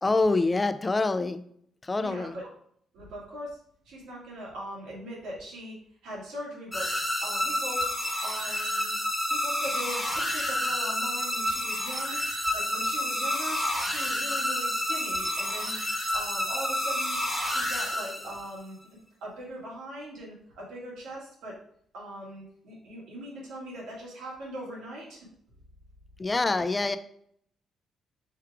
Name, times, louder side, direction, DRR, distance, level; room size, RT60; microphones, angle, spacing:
voice 1, 0.0-1.4 1.8-2.4 26.2-27.0, left 3 dB, 20° left, 10 dB, 0.3 m, -26 dB
voice 2, 2.0-2.5 2.9-3.6 3.9-5.8 6.0-7.9 8.2-9.0 9.3-18.8 19.2-21.6 21.9-25.2, right 1 dB, 85° right, -4 dB, 1.8 m, -40 dB
sound 1, 6.7-18.6, left 1 dB, ahead, 1.1 m, -29 dB
4.7 x 2.3 x 4.6 m, 0.67 s
cardioid pair, 90°, 0 cm